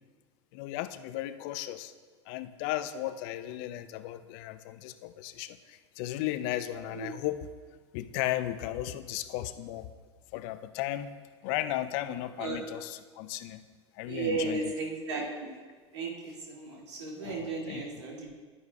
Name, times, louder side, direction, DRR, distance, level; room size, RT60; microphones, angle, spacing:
voice 1, 0.5-1.9 2.3-7.4 7.9-9.9 10.3-11.1 11.4-13.6 14.0-14.7 17.2-17.9, left 13 dB, 50° left, 12 dB, 0.5 m, -35 dB
voice 2, 14.1-15.5 15.9-18.3, right 3 dB, 75° right, -2 dB, 2.2 m, -34 dB
11.0 x 9.4 x 2.3 m, 1.5 s
hypercardioid pair, 85°, 15 cm